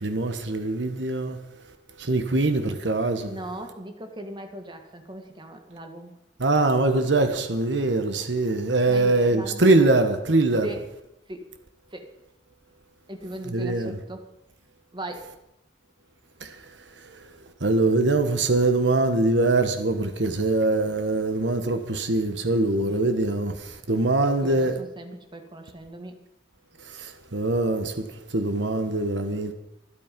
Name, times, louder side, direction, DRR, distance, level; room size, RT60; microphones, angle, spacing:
voice 1, 0.0-1.4 2.0-3.3 6.4-10.7 13.5-14.0 16.4-16.6 17.6-24.8 26.9-28.1 28.3-29.5, right 2 dB, 70° right, 1.4 m, -23 dB
voice 2, 3.2-6.1 8.9-9.7 10.6-10.9 11.3-11.5 11.9-12.1 13.1-14.3 14.9-15.3 22.9-23.0 24.4-26.2, right 1 dB, 25° right, 1.9 m, -38 dB
25.5 x 8.7 x 5.3 m
head